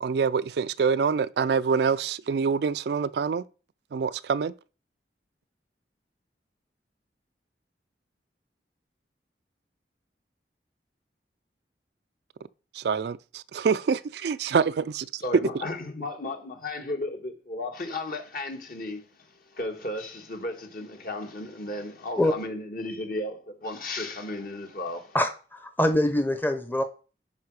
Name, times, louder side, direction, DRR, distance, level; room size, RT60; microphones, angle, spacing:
voice 1, 0.0-3.4 3.9-4.5 12.7-15.2, right 6 dB, 65° right, 0.4 m, -26 dB
voice 2, 15.2-25.2, left 2 dB, 55° left, 1.7 m, -34 dB
voice 3, 25.1-26.8, left 1 dB, 10° left, 0.8 m, -24 dB
10.5 x 5.0 x 4.8 m
head